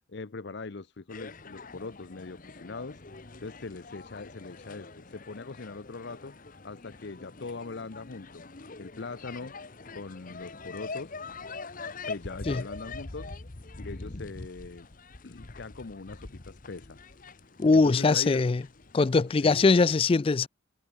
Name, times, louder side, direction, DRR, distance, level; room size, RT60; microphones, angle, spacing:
voice 1, 0.0-3.0 3.4-6.4 6.6-8.4 8.8-9.6 9.9-11.1 12.1-13.3 13.8-14.9 15.2-17.0 17.7-18.4 19.3-19.7, left 3 dB, 60° left, 0.7 m, -41 dB
sound 1, 1.1-19.3, left 3 dB, 45° left, 1.1 m, -44 dB
voice 2, 17.6-18.6 18.9-20.5, left 4 dB, 30° left, 0.3 m, -22 dB
head